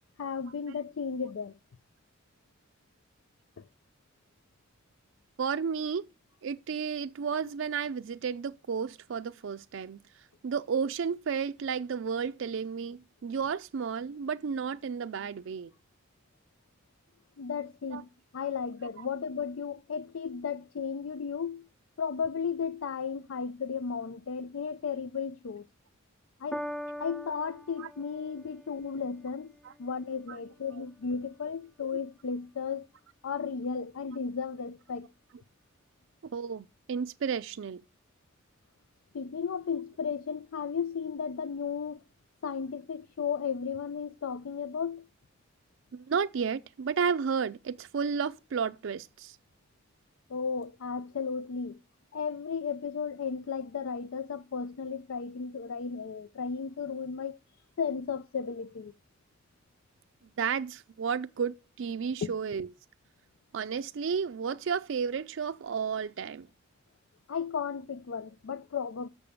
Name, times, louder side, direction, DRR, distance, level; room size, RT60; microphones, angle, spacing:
voice 1, 0.2-1.6 3.6-3.7 17.4-18.1 18.3-21.7 22.0-25.7 26.4-26.6 27.0-29.5 29.8-32.9 33.2-35.1 39.1-42.0 42.4-45.1 50.3-51.8 52.1-57.4 57.8-58.9 62.2-62.3 67.3-69.1, left 6 dB, 85° left, 0.4 m, -34 dB
voice 2, 5.4-6.0 6.4-15.7 17.9-18.0 27.8-27.9 29.6-29.7 30.3-30.4 30.7-30.8 36.2-37.8 45.9-49.4 60.4-62.7 63.5-66.5, right 6 dB, 65° right, 0.4 m, -32 dB
Piano, 26.5-33.1 33.9-34.0, equal, 5° left, 0.4 m, -45 dB
6.9 x 6.7 x 7.0 m
head